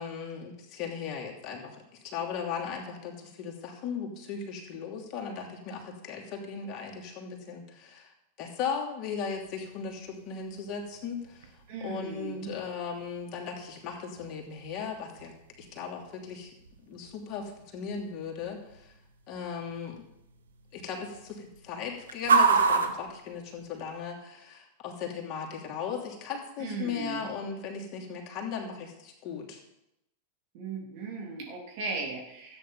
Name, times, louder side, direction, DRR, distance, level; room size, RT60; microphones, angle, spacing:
voice 1, 0.0-8.1 8.4-11.5 11.8-15.3 15.6-16.5 16.9-18.9 19.3-20.0 20.7-29.6, left 6 dB, 45° left, 0 dB, 2.9 m, -37 dB
sound 1, 9.3-24.1, right 5 dB, 80° right, 1.2 m, -33 dB
voice 2, 11.7-12.6 26.6-27.3 30.5-32.6, right 4 dB, 55° right, 0 dB, 3.3 m, -37 dB
13.0 x 8.9 x 5.6 m, 0.85 s
hypercardioid pair, 95°, 0 cm